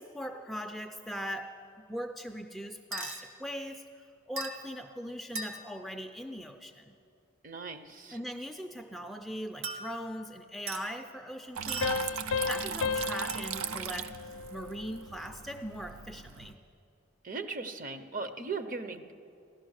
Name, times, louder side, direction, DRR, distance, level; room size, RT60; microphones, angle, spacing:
voice 1, 0.0-1.6 1.9-6.9 8.1-16.6, equal, ahead, 4 dB, 0.4 m, -40 dB
sound 1, 2.9-3.2 4.4-4.7 5.3-5.8 9.6-10.3 10.7-10.9 11.7-12.2 13.3-13.5, right 3 dB, 70° right, 1.3 m, -39 dB
voice 2, 7.4-8.2 17.2-19.1, right 4 dB, 40° right, 9 dB, 0.6 m, -38 dB
Water tap faucet / Trickle dribble, 11.6-16.5, right 7 dB, 90° right, 0.5 m, -39 dB
sound 2, 11.8-15.1, left 5 dB, 75° left, 0.5 m, -34 dB
15.5 x 12.0 x 6.4 m, 2.5 s
head